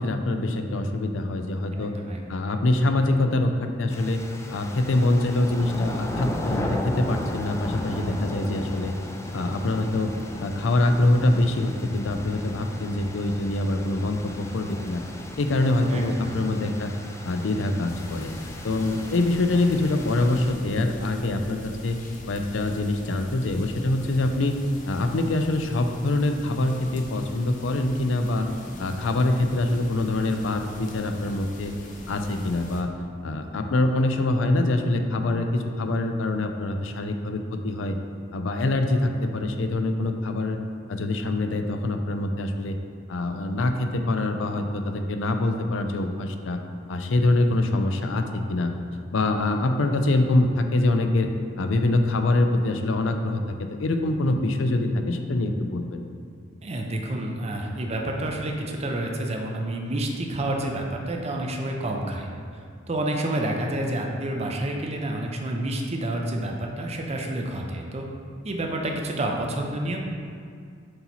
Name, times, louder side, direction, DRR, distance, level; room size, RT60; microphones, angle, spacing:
voice 1, 0.0-1.9 2.3-4.2 4.5-8.9 9.3-10.1 10.4-15.0 15.4-16.9 17.2-18.3 18.6-22.0 22.3-24.6 24.9-28.5 28.8-31.7 32.1-32.9 33.2-38.0 38.3-40.6 40.9-42.8 43.1-46.6 46.9-48.7 49.1-51.3 51.6-56.0, left 2 dB, 90° left, 6 dB, 0.5 m, -24 dB
voice 2, 1.7-2.2 15.9-16.4 56.6-68.1 68.4-70.0, right 1 dB, 35° right, 1 dB, 0.6 m, -29 dB
sound 1, 3.9-20.5, left 1 dB, 15° left, 0.4 m, -35 dB
sound 2, 17.9-32.8, left 1 dB, 45° left, 0.7 m, -43 dB
7.7 x 3.0 x 4.1 m, 2.2 s
head